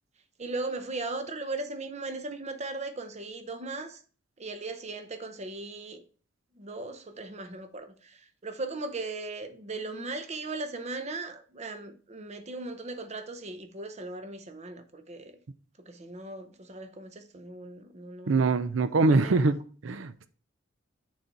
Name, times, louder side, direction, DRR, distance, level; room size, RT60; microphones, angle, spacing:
voice 1, 0.4-4.0 4.4-6.0 6.5-15.4 15.8-18.5 19.1-19.5, right 3 dB, 35° right, 0.8 m, -38 dB
voice 2, 18.3-19.6 19.8-20.3, right 3 dB, 75° right, 0.5 m, -23 dB
6.5 x 4.1 x 4.5 m
head